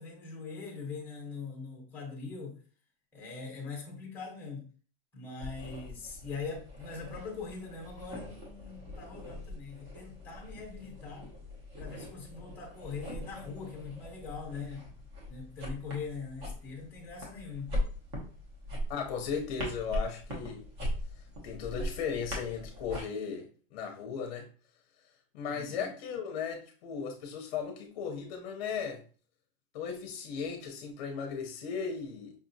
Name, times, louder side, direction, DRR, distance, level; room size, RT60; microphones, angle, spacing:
voice 1, 0.0-2.6 3.1-4.7 5.1-11.3 11.8-14.8 15.3-17.7 25.5-25.9, left 4 dB, 5° left, 0 dB, 0.8 m, -42 dB
sound 1, 5.4-23.0, left 1 dB, 40° right, 1.2 m, -41 dB
voice 2, 18.9-20.6 21.4-24.5 25.3-29.0 29.7-32.3, left 6 dB, 45° left, 2 dB, 0.7 m, -36 dB
5.2 x 2.7 x 2.7 m, 0.40 s
supercardioid pair, 180°, 30 cm